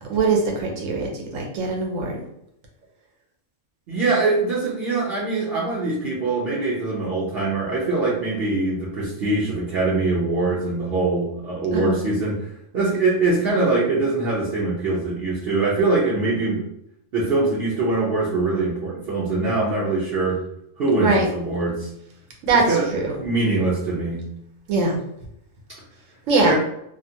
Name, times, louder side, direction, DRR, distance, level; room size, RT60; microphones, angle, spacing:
voice 1, 0.0-2.2 11.7-12.0 21.0-21.3 22.4-23.1 24.7-25.0 26.3-26.5, right 3 dB, 85° right, 1 dB, 1.1 m, -22 dB
voice 2, 3.9-16.6 17.1-20.4 20.8-21.9 22.7-22.8 23.2-24.2 26.4-26.6, right 3 dB, 60° right, -7 dB, 0.8 m, -23 dB
2.5 x 2.4 x 2.6 m, 0.76 s
omnidirectional pair, 1.3 m